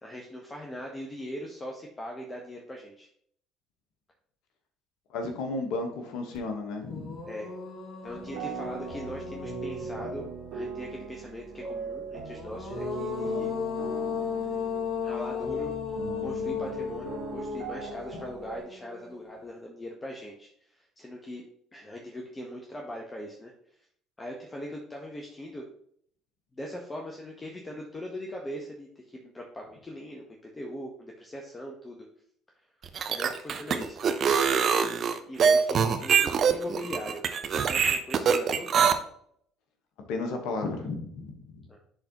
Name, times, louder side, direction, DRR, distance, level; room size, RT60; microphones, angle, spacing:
voice 1, 0.0-3.1 7.3-7.5 8.0-10.3 10.5-13.5 14.5-14.7 15.0-15.7 16.2-21.4 21.7-23.8 24.2-25.7 26.6-32.1 32.5-32.6 33.1-34.4 35.3-38.7 41.7-41.8, equal, 20° left, 0 dB, 1.1 m, -40 dB
voice 2, 5.1-7.3 9.9-10.0 40.1-41.6, left 3 dB, 65° left, 4 dB, 1.3 m, -33 dB
sound 1, 6.3-6.4 6.8-10.5 12.2-19.4, left 6 dB, 45° left, 1.6 m, -35 dB
sound 2, 8.0-18.6, right 4 dB, 70° right, 1.5 m, -39 dB
sound 3, 32.8-38.9, right 6 dB, 45° right, 0.7 m, -23 dB
10.5 x 4.0 x 3.0 m, 0.66 s
hypercardioid pair, 60°, 0 cm